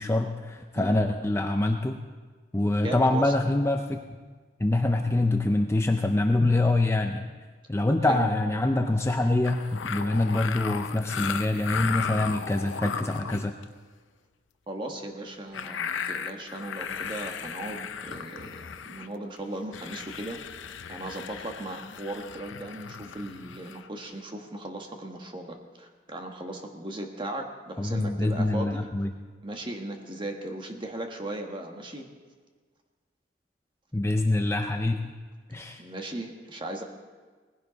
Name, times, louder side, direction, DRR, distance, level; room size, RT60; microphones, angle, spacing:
voice 1, 0.0-2.0 2.5-4.2 4.6-7.3 7.7-13.5 27.8-29.1 33.9-35.0 35.5-35.8, left 2 dB, 15° left, 4 dB, 0.5 m, -25 dB
voice 2, 0.7-1.1 2.8-3.3 8.0-8.3 14.7-28.9 29.4-32.1 35.8-36.8, right 1 dB, 25° right, 3 dB, 1.3 m, -37 dB
sound 1, 9.0-9.1 9.4-13.6 15.5-19.1 19.4-19.5 19.7-23.9, left 6 dB, 85° left, 0.6 m, -36 dB
19.0 x 15.5 x 4.0 m, 1.5 s
head